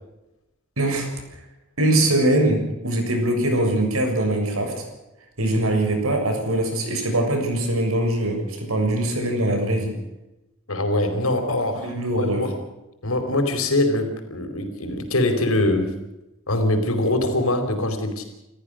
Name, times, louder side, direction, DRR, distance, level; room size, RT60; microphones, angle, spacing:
voice 1, 0.8-1.1 1.8-4.9 5.4-9.9 11.8-12.4, right 1 dB, 90° right, 4 dB, 7.0 m, -22 dB
voice 2, 10.7-12.6 13.0-15.9 16.5-18.2, left 1 dB, 85° left, 7 dB, 4.6 m, -23 dB
29.5 x 14.5 x 6.5 m, 0.96 s
head